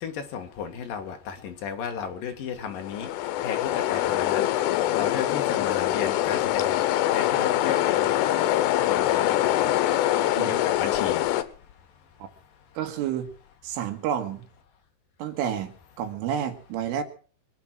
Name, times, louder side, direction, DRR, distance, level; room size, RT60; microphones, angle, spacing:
voice 1, 0.0-3.1 3.4-4.5 4.9-6.8 7.1-8.3 8.9-11.2, left 7 dB, 55° left, 5 dB, 2.9 m, -35 dB
sound 1, 2.7-11.4, left 13 dB, 85° left, 3.5 m, -24 dB
voice 2, 12.8-13.3 13.6-14.4 15.2-17.0, right 9 dB, 80° right, 8 dB, 4.1 m, -30 dB
24.5 x 8.2 x 6.0 m, 0.42 s
omnidirectional pair, 5.6 m